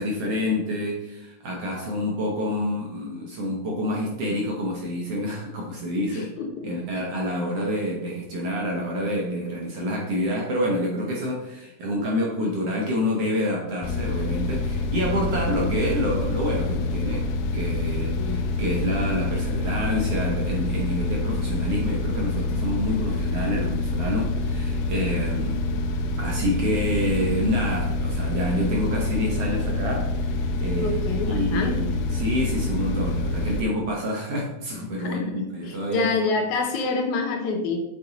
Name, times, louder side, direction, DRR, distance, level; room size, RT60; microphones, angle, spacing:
voice 1, 0.0-6.3 6.6-17.3 17.5-25.6 26.2-36.1, equal, 65° right, -2 dB, 1.7 m, -28 dB
voice 2, 6.1-7.0 18.2-18.5 25.1-25.4 30.8-31.9 35.0-37.8, left 3 dB, 75° left, 3 dB, 2.1 m, -28 dB
sound 1, 13.8-33.6, left 2 dB, 90° left, 2.2 m, -26 dB
7.2 x 4.2 x 3.9 m, 0.91 s
omnidirectional pair, 3.7 m